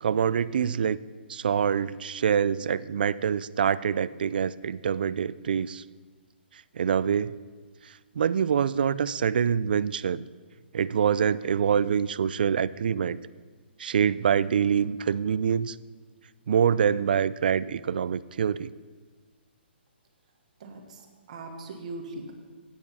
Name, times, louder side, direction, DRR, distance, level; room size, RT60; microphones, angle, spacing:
voice 1, 0.0-1.0 1.3-5.8 6.7-7.3 8.2-10.2 10.7-13.2 13.8-15.8 16.5-18.7, right 7 dB, 55° right, 17 dB, 0.3 m, -25 dB
voice 2, 20.6-22.3, right 2 dB, 35° right, 3 dB, 1.3 m, -40 dB
13.5 x 9.0 x 4.1 m, 1.4 s
hypercardioid pair, 175°, 6 cm